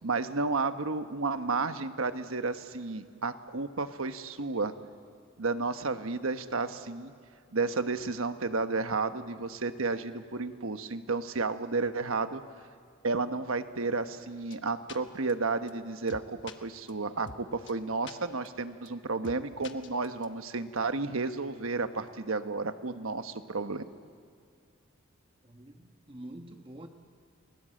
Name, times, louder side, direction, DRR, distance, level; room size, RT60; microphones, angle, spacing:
voice 1, 0.0-4.7 5.4-7.1 7.5-12.4 13.0-23.8, right 3 dB, 85° right, 1.2 m, -32 dB
sound 1, 14.5-14.6 14.9-15.0 15.3-15.4 15.7-15.8 16.1-16.5 16.9-17.0 17.3-17.4 17.7-17.8 18.1-18.2 18.5-18.6 18.9-19.0 19.2-19.4 19.6-20.3, left 4 dB, 60° left, 1.2 m, -44 dB
voice 2, 25.4-26.9, right 1 dB, 25° right, 1.2 m, -46 dB
29.5 x 21.0 x 7.7 m
head